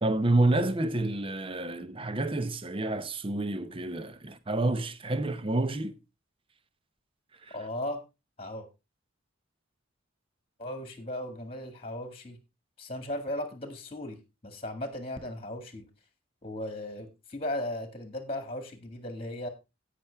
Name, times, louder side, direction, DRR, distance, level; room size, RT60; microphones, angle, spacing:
voice 1, 0.0-5.9 7.5-7.6, right 2 dB, 25° right, 0.8 m, -28 dB
voice 2, 7.5-8.0 8.4-8.7 10.6-12.4 12.8-15.9 16.4-19.5, left 1 dB, 30° left, 1.8 m, -36 dB
17.0 x 6.0 x 3.3 m
head